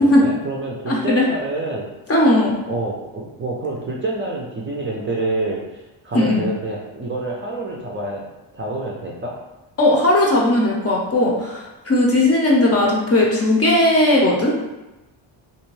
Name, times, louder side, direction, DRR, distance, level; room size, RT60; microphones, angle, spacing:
voice 1, 0.0-1.9 2.7-8.3 8.5-9.3, right 2 dB, 25° right, -3 dB, 0.5 m, -27 dB
voice 2, 0.9-1.2 2.1-2.6 6.1-6.4 9.8-14.5, left 1 dB, 30° left, -2 dB, 0.6 m, -17 dB
2.6 x 2.2 x 3.1 m, 1.0 s
cardioid pair, 90°, 49 cm